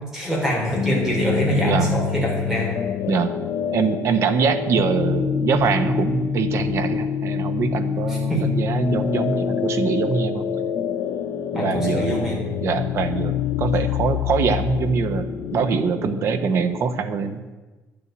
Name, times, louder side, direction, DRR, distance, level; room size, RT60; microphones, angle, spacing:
voice 1, 0.0-2.7 8.1-8.4 11.5-12.4, equal, 5° right, -3 dB, 3.7 m, -24 dB
sound 1, 0.7-16.8, left 8 dB, 50° left, 0.7 m, -26 dB
voice 2, 3.7-10.4 11.5-12.2 12.6-17.4, right 5 dB, 50° right, 9 dB, 1.0 m, -23 dB
11.0 x 7.1 x 9.0 m, 1.2 s
cardioid pair, 170°, 6 cm